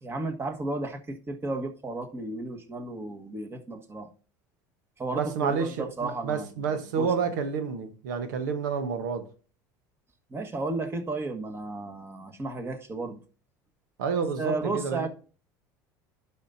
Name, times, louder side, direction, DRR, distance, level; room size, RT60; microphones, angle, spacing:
voice 1, 0.0-4.1 5.0-7.1 10.3-13.2 14.4-15.1, right 2 dB, 25° right, 1.5 m, -33 dB
voice 2, 5.1-9.2 14.0-15.1, right 6 dB, 85° right, 1.1 m, -29 dB
11.5 x 5.7 x 2.7 m
hypercardioid pair, 85°, 10 cm